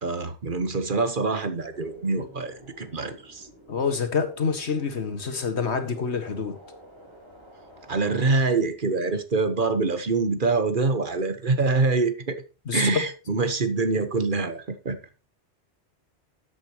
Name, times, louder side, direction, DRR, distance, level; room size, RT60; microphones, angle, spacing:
voice 1, 0.0-3.5 7.9-12.4 12.7-15.0, right 3 dB, 50° right, 1.3 m, -25 dB
sound 1, 1.7-8.3, equal, 25° right, 4.0 m, -50 dB
voice 2, 3.7-6.6 12.7-13.0, left 5 dB, 75° left, 1.9 m, -27 dB
13.5 x 8.5 x 3.0 m
omnidirectional pair, 1.1 m